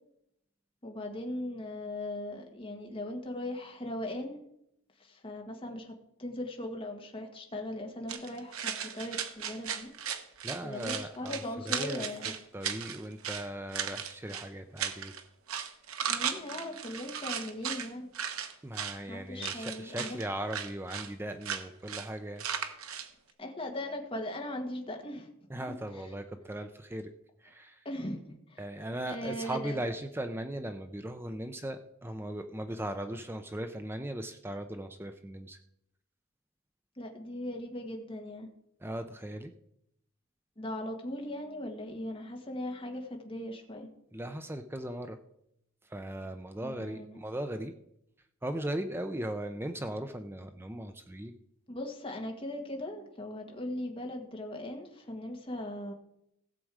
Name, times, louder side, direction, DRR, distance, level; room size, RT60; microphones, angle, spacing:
voice 1, 0.8-4.4 5.0-5.9 6.2-9.9 10.6-12.3 16.1-18.1 19.1-20.2 23.4-25.3 25.7-25.8 27.8-28.6 29.1-29.8 37.0-38.5 40.6-43.9 46.6-47.1 51.7-55.9, left 1 dB, 25° left, 2 dB, 1.5 m, -39 dB
sound 1, 8.1-13.4 13.7-14.5 14.8-15.2 15.5-17.9 18.1-19.0 19.4-20.3 20.5-21.1 21.4-21.6 21.9-22.1 22.4-23.1, right 8 dB, 75° right, 1.2 m, -36 dB
voice 2, 10.4-15.1 18.6-22.4 25.5-27.1 27.4-27.8 28.6-35.6 38.8-39.5 44.1-45.2 45.8-47.7 48.4-51.3, right 1 dB, 10° right, 8 dB, 0.5 m, -38 dB
16.0 x 7.6 x 4.8 m, 0.77 s
head